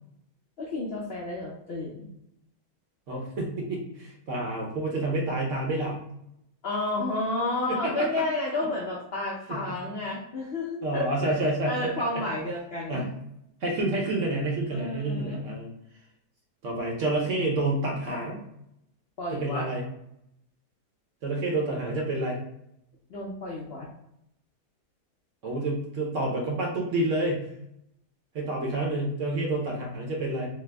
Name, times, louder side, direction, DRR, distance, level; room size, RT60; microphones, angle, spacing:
voice 1, 0.6-2.1 6.6-11.3 11.6-13.0 14.7-15.4 19.2-19.6 23.1-23.9, left 2 dB, 80° left, -3 dB, 0.5 m, -31 dB
voice 2, 3.1-6.0 7.7-8.1 9.5-9.8 10.8-12.2 12.9-13.1 13.6-15.7 16.6-18.4 19.3-19.8 21.2-22.4 25.4-27.5 28.3-30.5, right 2 dB, 60° right, -1 dB, 0.9 m, -29 dB
3.3 x 2.0 x 3.3 m, 0.78 s
omnidirectional pair, 1.8 m